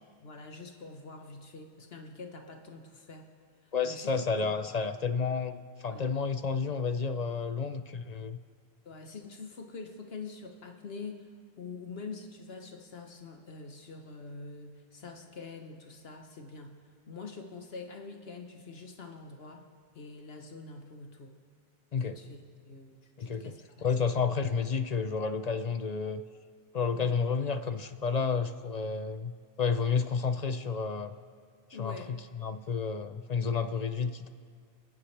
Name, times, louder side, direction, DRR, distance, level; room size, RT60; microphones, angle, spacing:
voice 1, 0.2-3.3 3.6-4.1 4.4-4.9 5.9-6.2 8.8-16.8 17.1-19.6 19.9-21.3 22.0-22.4 22.6-22.9 23.2-23.6 24.0-24.1 27.0-27.2 31.7-32.1, left 4 dB, 70° left, 4 dB, 1.3 m, -45 dB
voice 2, 3.7-8.4 21.9-22.2 23.2-23.5 23.8-26.2 26.7-29.3 29.6-31.1 31.8-34.3, left 5 dB, 50° left, 10 dB, 0.5 m, -31 dB
29.0 x 9.8 x 3.3 m, 2.1 s
omnidirectional pair, 1.1 m